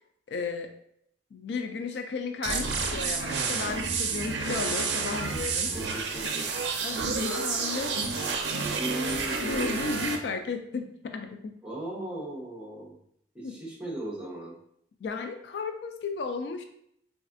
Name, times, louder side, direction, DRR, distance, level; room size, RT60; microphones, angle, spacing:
voice 1, 0.3-0.7 1.3-5.7 6.2-6.3 6.8-8.9 9.3-11.5 13.4-13.5 15.0-16.6, left 4 dB, 70° left, 6 dB, 0.3 m, -34 dB
sound 1, 2.4-10.2, right 4 dB, 75° right, 0.5 m, -30 dB
voice 2, 5.7-6.6 8.8-9.9 11.6-13.0 13.3-14.5, right 1 dB, 5° right, -4 dB, 0.9 m, -37 dB
4.0 x 2.5 x 2.5 m, 0.71 s
head